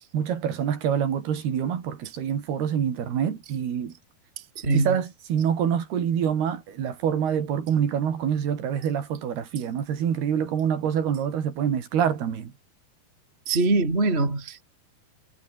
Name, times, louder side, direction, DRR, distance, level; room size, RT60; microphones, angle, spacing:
voice 1, 0.1-3.9 4.7-12.5, right 8 dB, 85° right, 5.1 m, -26 dB
voice 2, 4.4-5.0 13.5-14.6, right 3 dB, 15° right, 3.3 m, -23 dB
omnidirectional pair, 4.4 m